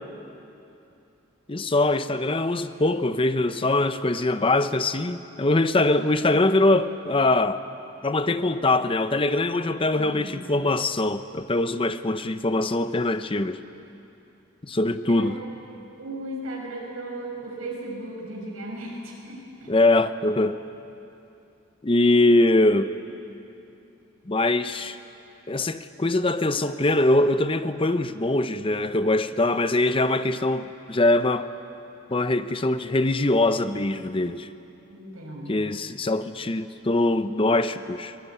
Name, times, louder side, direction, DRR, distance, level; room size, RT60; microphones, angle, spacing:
voice 1, 1.5-7.6 8.0-13.6 14.6-15.4 19.7-20.6 21.8-22.9 24.3-25.0 25.5-31.5 32.1-34.5 35.5-38.1, left 2 dB, 25° left, 0.7 m, -22 dB
voice 2, 9.9-10.4 15.1-15.3 16.0-19.7 34.9-35.7, right 1 dB, 90° right, 6.6 m, -36 dB
24.0 x 19.5 x 9.5 m
head